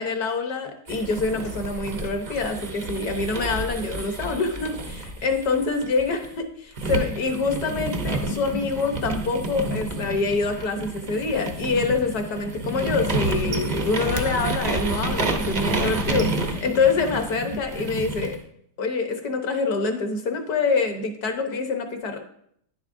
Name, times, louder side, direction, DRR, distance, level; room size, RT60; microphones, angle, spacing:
voice 1, 0.0-5.0 5.2-18.3 18.8-22.2, left 4 dB, 60° left, 5 dB, 1.4 m, -26 dB
sound 1, 0.9-6.3 6.8-18.4, right 2 dB, 75° right, 0.4 m, -29 dB
10.0 x 7.1 x 2.6 m, 0.68 s
omnidirectional pair, 2.0 m